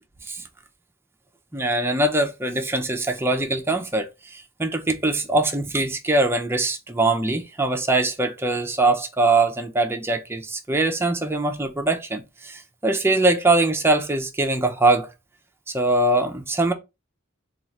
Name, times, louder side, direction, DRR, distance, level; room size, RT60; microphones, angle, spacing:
voice 1, 1.5-15.1 15.7-16.7, right 2 dB, 10° right, 0.5 m, -22 dB
3.0 x 2.4 x 4.0 m
head